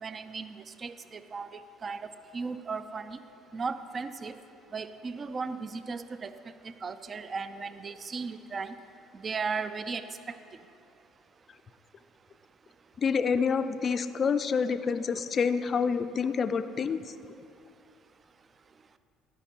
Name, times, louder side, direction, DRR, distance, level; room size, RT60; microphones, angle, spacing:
voice 1, 0.0-1.5 1.8-3.2 3.5-4.3 4.7-6.3 6.8-8.8 9.1-10.4, right 4 dB, 35° right, 11 dB, 0.4 m, -36 dB
voice 2, 13.0-17.1, left 6 dB, 40° left, 11 dB, 0.4 m, -27 dB
11.5 x 5.2 x 4.4 m, 2.5 s
hypercardioid pair, 65°, 0 cm